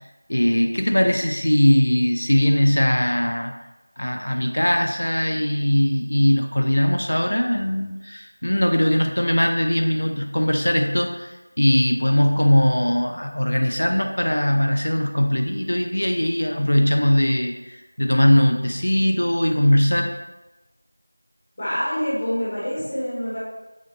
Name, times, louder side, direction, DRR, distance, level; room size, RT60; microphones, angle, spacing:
voice 1, 0.3-3.5 4.0-20.1, left 1 dB, 60° left, 3 dB, 0.5 m, -20 dB
voice 2, 21.6-23.4, equal, 15° left, -8 dB, 0.7 m, -26 dB
6.3 x 2.1 x 3.8 m, 1.1 s
figure-of-eight pair, 180°, 0 cm